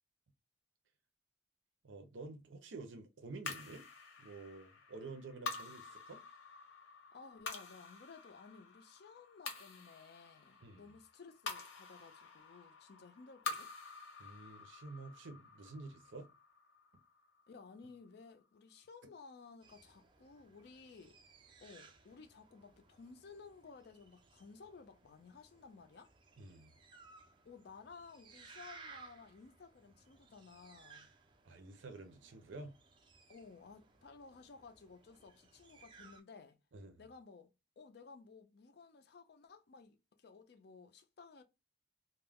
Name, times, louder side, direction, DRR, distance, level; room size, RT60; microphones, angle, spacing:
voice 1, 1.8-3.9 4.2-6.2 10.6-10.9 14.2-16.3 26.4-26.7 31.4-32.7 36.7-37.0, right 3 dB, 75° right, 0.6 m, -50 dB
sound 1, 3.4-18.0, left 4 dB, 85° left, 0.8 m, -48 dB
voice 2, 7.1-13.7 17.5-21.2 21.6-26.1 27.4-31.1 33.3-36.6 37.0-37.5 37.8-41.4, left 4 dB, 55° left, 0.4 m, -56 dB
sound 2, 19.6-36.2, right 4 dB, 25° right, 0.3 m, -61 dB
2.3 x 2.1 x 3.4 m
head